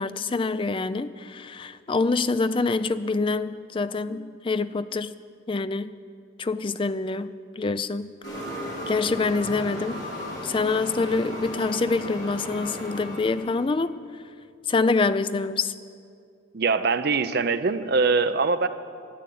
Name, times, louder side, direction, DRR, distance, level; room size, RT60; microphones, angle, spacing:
voice 1, 0.0-5.1 5.5-5.9 6.4-8.1 8.9-10.0 10.4-14.0 14.7-15.7, left 3 dB, 25° left, 13 dB, 0.3 m, -26 dB
sound 1, 8.2-13.7, left 1 dB, 60° left, 3.8 m, -35 dB
voice 2, 16.5-18.7, right 4 dB, 50° right, 11 dB, 0.6 m, -23 dB
13.5 x 9.2 x 8.5 m, 2.3 s
head